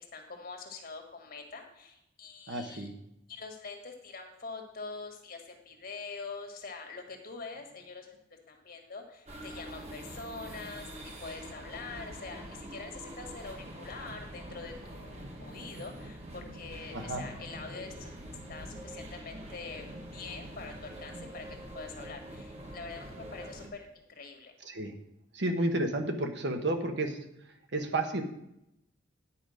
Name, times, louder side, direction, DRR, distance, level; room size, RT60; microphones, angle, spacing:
voice 1, 0.0-2.9 3.3-8.2 8.5-10.9 11.2-18.1 18.5-19.9 20.1-21.5 21.7-24.5, left 4 dB, 50° left, 3 dB, 1.6 m, -44 dB
voice 2, 2.5-2.9 16.9-17.2 24.6-24.9 25.3-27.2 27.7-28.2, right 2 dB, 65° right, 5 dB, 1.3 m, -31 dB
sound 1, 9.3-23.7, right 1 dB, 35° right, 1.5 m, -45 dB
10.0 x 5.1 x 6.3 m, 0.82 s
head